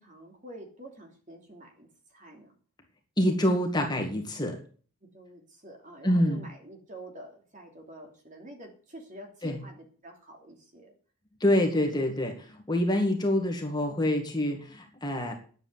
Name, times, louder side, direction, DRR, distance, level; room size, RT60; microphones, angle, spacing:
voice 1, 0.0-2.5 5.0-10.9, right 1 dB, 35° right, 2 dB, 3.0 m, -47 dB
voice 2, 3.2-4.6 6.0-6.4 9.4-9.6 11.4-15.3, left 1 dB, 20° left, 2 dB, 1.9 m, -26 dB
10.5 x 7.9 x 7.4 m, 0.42 s
head